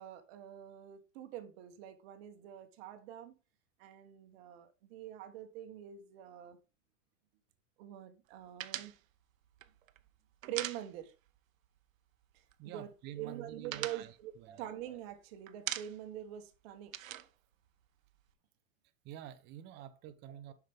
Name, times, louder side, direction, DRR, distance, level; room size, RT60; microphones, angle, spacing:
voice 1, 0.0-3.4 3.8-6.6 7.8-8.9 10.5-11.1 12.3-12.9 13.2-16.9 19.7-19.8, right 12 dB, 50° right, 1.2 m, -45 dB
sound 1, 8.6-11.4 11.6-11.8 12.1-12.8 13.1-15.1 15.5-16.2 16.5-18.3, right 12 dB, 85° right, 0.8 m, -43 dB
voice 2, 12.6-14.6 19.0-20.5, right 11 dB, 25° right, 0.7 m, -49 dB
7.3 x 5.9 x 3.5 m
hypercardioid pair, 140°, 39 cm